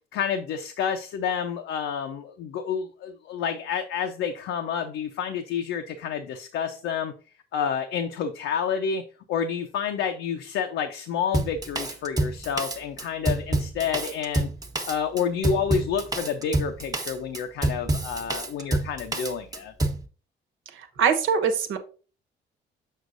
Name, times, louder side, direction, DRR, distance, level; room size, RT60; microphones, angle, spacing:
voice 1, 0.1-7.1 7.5-9.0 9.3-14.5 14.8-19.7, left 7 dB, 90° left, 5 dB, 0.7 m, -29 dB
Drum kit, 11.3-20.0, right 2 dB, 20° right, 1.0 m, -27 dB
voice 2, 20.7-21.8, right 6 dB, 80° right, 8 dB, 1.2 m, -23 dB
6.4 x 6.1 x 2.6 m, 0.36 s
cardioid pair, 90°, 20 cm